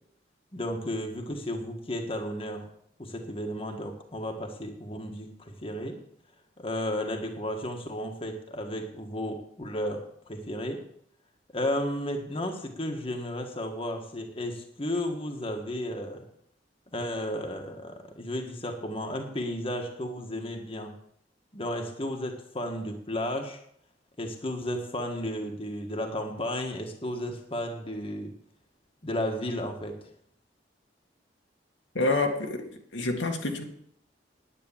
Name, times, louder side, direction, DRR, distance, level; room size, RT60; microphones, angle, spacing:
voice 1, 0.5-2.7 3.0-6.0 6.6-10.8 11.5-16.2 16.9-20.9 21.5-23.6 24.2-28.3 29.0-30.1, left 1 dB, 30° left, 3 dB, 1.6 m, -33 dB
voice 2, 31.9-32.7 32.9-33.6, left 2 dB, 90° left, 2 dB, 2.1 m, -27 dB
9.9 x 9.6 x 7.3 m, 0.68 s
head